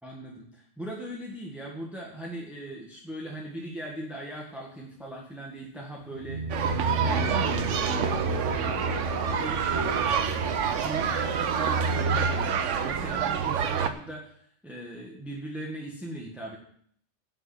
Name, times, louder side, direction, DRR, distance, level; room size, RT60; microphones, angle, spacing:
voice 1, 0.0-16.6, right 1 dB, ahead, -2 dB, 1.6 m, -39 dB
sound 1, 6.1-12.1, right 3 dB, 45° right, 1.3 m, -33 dB
sound 2, 6.5-13.9, right 6 dB, 80° right, 1.1 m, -27 dB
11.0 x 5.7 x 8.6 m, 0.63 s
omnidirectional pair, 1.2 m